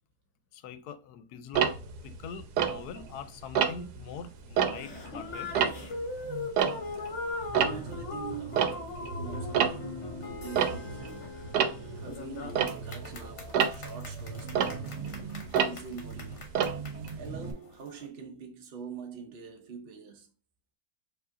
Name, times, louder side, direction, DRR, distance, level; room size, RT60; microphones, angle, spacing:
voice 1, 0.5-1.8 2.0-5.6, left 6 dB, 85° left, 1.1 m, -43 dB
Tick-tock, 1.5-3.2 3.5-4.0 4.4-7.1 7.4-17.5, right 7 dB, 90° right, 1.2 m, -30 dB
sound 1, 4.5-18.1, left 3 dB, 55° left, 1.2 m, -41 dB
voice 2, 7.5-11.4 11.9-14.9 15.5-16.5 17.1-20.3, right 6 dB, 50° right, 0.8 m, -44 dB
4.7 x 2.9 x 2.5 m
omnidirectional pair, 1.6 m